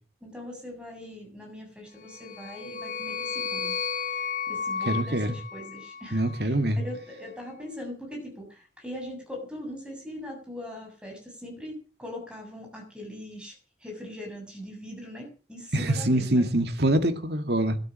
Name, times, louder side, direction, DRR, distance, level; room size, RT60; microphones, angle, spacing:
voice 1, 0.2-3.7 4.2-13.5 13.8-16.5, left 1 dB, 5° right, 7.4 m, -41 dB
sound 1, 2.1-6.4, left 6 dB, 45° left, 1.1 m, -33 dB
voice 2, 4.9-5.4 6.1-6.8 15.7-17.8, right 1 dB, 60° right, 2.1 m, -24 dB
13.0 x 12.5 x 7.5 m
head